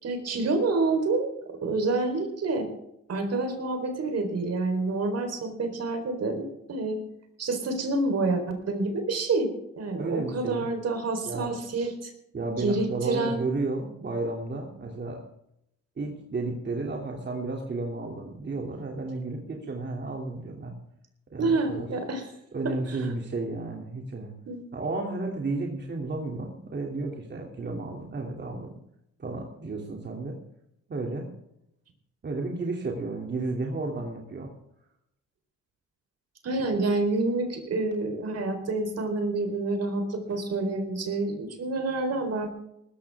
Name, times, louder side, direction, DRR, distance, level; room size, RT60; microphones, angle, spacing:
voice 1, 0.0-1.3 1.6-2.7 3.1-7.0 7.4-12.1 12.6-13.4 21.4-22.2 22.6-23.1 24.5-24.6 36.4-42.5, right 3 dB, 55° right, 6 dB, 4.2 m, -28 dB
voice 2, 10.0-10.7 11.2-11.5 12.3-15.2 16.0-20.7 21.3-22.0 22.5-24.3 24.7-28.7 29.2-30.4 30.9-31.3 32.2-34.5 36.5-36.7 40.3-40.4, right 3 dB, 35° right, 0 dB, 2.9 m, -32 dB
19.0 x 14.0 x 3.6 m, 0.79 s
cardioid pair, 90°, 30 cm